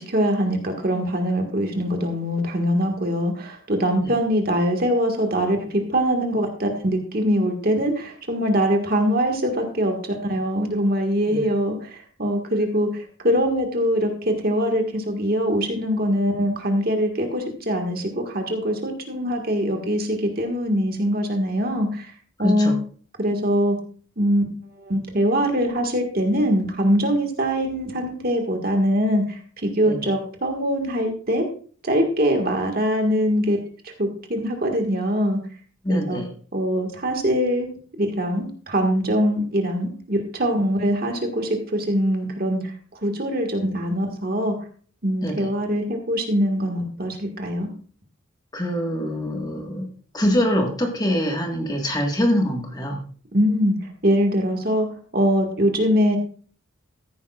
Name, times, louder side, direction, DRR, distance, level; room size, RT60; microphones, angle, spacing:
voice 1, 0.0-22.1 22.4-22.7 23.2-23.8 24.2-24.4 24.7-31.5 31.8-33.6 33.8-35.4 35.9-36.2 36.5-37.7 38.0-44.6 45.0-47.7 53.3-54.9 55.1-56.2, equal, 45° right, 3 dB, 1.7 m, -23 dB
voice 2, 22.4-22.8 29.8-30.0 35.8-36.3 45.2-45.5 48.5-49.9 50.1-53.0, equal, 20° left, 2 dB, 1.6 m, -24 dB
14.0 x 10.5 x 2.4 m, 0.43 s
head